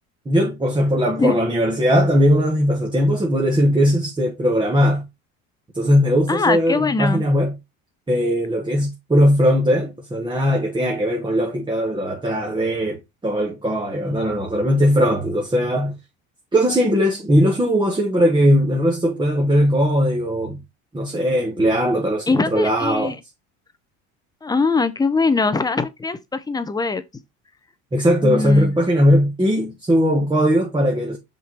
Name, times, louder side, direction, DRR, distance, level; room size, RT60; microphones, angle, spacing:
voice 1, 0.2-5.0 5.7-7.5 8.1-15.9 16.5-20.6 20.9-23.1 27.9-31.2, equal, 15° right, 1.3 m, -19 dB
voice 2, 6.3-7.2 22.3-23.2 24.4-27.0 28.2-28.7, left 3 dB, 10° left, 0.7 m, -21 dB
5.7 x 3.8 x 4.4 m
supercardioid pair, 110°, 34 cm